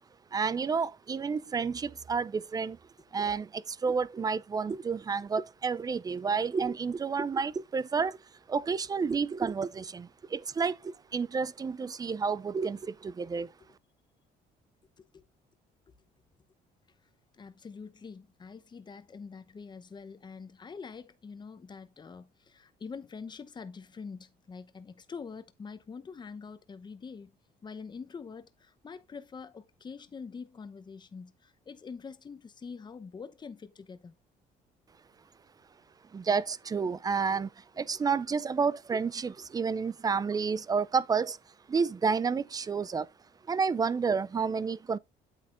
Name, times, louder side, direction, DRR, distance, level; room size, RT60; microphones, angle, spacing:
voice 1, 0.3-2.8 3.1-8.2 8.5-13.5 36.1-41.4 41.7-43.1 43.5-45.0, right 5 dB, 20° right, 0.4 m, -30 dB
voice 2, 17.4-27.4 27.6-34.1, left 5 dB, 25° left, 0.9 m, -45 dB
8.8 x 7.5 x 2.6 m
cardioid pair, 110°, 17 cm